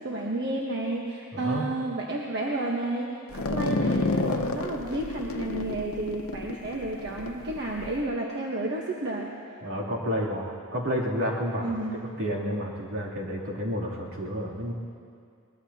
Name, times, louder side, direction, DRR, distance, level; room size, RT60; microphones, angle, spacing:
voice 1, 0.0-9.3 11.6-11.9, right 2 dB, 55° right, -2 dB, 1.2 m, -31 dB
voice 2, 1.3-1.6 9.6-14.7, equal, 70° right, -4 dB, 3.0 m, -30 dB
sound 1, 3.3-8.0, left 3 dB, 75° left, 0.8 m, -30 dB
23.5 x 20.5 x 2.9 m, 2.3 s
head